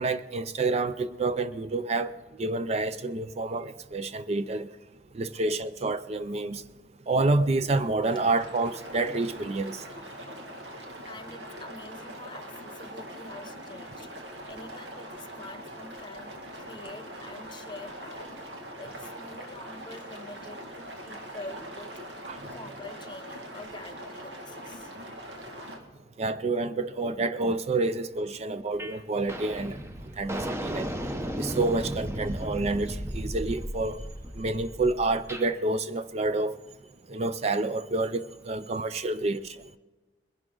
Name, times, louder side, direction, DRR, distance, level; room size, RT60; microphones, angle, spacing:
voice 1, 0.0-2.1 2.4-4.7 5.1-6.6 7.1-9.8 22.3-22.4 26.2-29.8 30.2-30.9 31.4-34.0 34.4-36.5 37.1-39.6, right 3 dB, 35° right, 0.4 m, -28 dB
sound 1, 8.0-25.8, right 1 dB, 85° right, 1.9 m, -42 dB
voice 2, 11.1-14.1 14.5-18.3 18.8-22.0 22.5-24.9 39.1-39.3, left 2 dB, 25° left, 1.0 m, -46 dB
sound 2, 28.8-29.0 29.3-35.5, equal, 15° right, 0.8 m, -35 dB
21.0 x 11.0 x 3.8 m
head